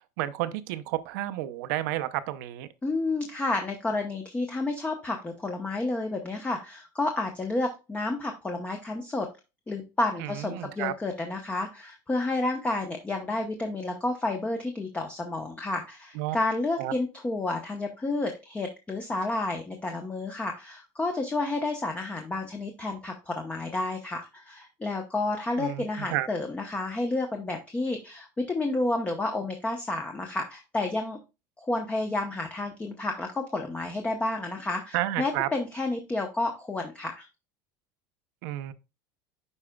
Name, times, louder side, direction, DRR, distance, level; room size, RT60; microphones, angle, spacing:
voice 1, 0.2-2.7 10.2-10.9 16.2-16.4 16.8-16.9 25.6-26.3 34.9-35.5 38.4-38.7, right 15 dB, 80° right, 0.7 m, -31 dB
voice 2, 2.8-9.3 9.7-31.2 31.6-37.3, left 2 dB, 15° left, 0.8 m, -30 dB
9.7 x 4.8 x 2.3 m
supercardioid pair, 135°, 10 cm